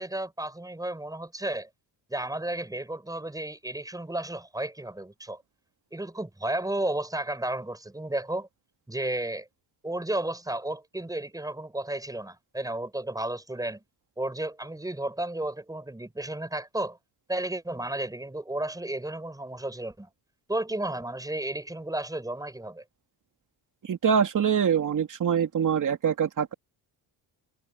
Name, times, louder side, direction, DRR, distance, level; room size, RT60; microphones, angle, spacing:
voice 1, 0.0-1.7 2.1-5.4 5.9-8.5 8.9-9.5 9.8-13.8 14.2-17.0 17.3-20.1 20.5-22.8, right 1 dB, 10° right, 6.8 m, -33 dB
voice 2, 23.8-26.5, right 7 dB, 45° right, 3.0 m, -24 dB
cardioid pair, 130°, 44 cm